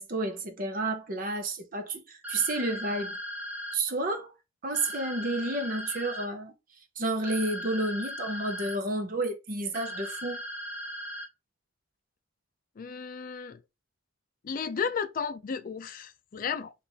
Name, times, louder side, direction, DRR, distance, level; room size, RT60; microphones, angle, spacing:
voice 1, 0.0-3.2 3.7-4.3 4.6-6.5 7.0-10.4, right 2 dB, 45° right, 0.7 m, -31 dB
sound 1, 2.2-3.8 4.7-6.3 7.2-8.8 9.7-11.3, equal, 10° right, 0.6 m, -38 dB
voice 2, 12.8-13.6 14.4-16.7, left 6 dB, 45° left, 0.4 m, -33 dB
3.5 x 2.4 x 4.0 m
head